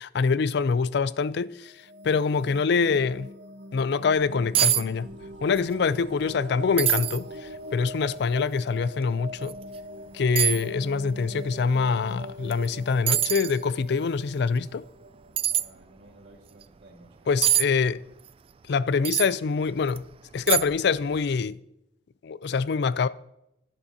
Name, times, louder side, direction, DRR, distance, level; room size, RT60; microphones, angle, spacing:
voice 1, 0.0-1.7 2.0-3.3 3.7-5.1 5.4-9.6 10.1-14.8 17.3-18.0 18.7-20.0 20.3-21.6 22.2-23.1, left 5 dB, 65° left, 0.4 m, -25 dB
sound 1, 1.6-16.3, equal, 70° right, 1.0 m, -43 dB
sound 2, 4.2-4.3 4.5-4.8 5.1-5.7 6.0-6.1 6.8-7.2 7.8-7.9 9.4-9.6 10.4-10.6 12.5-12.7 13.1-13.6 15.4-15.7 17.4-17.7 19.0-19.3 19.9-20.0 20.5-20.9 21.2-21.3, right 11 dB, 30° right, 0.3 m, -24 dB
voice 2, 15.5-18.0, right 1 dB, 90° right, 1.9 m, -53 dB
11.0 x 10.5 x 2.8 m
head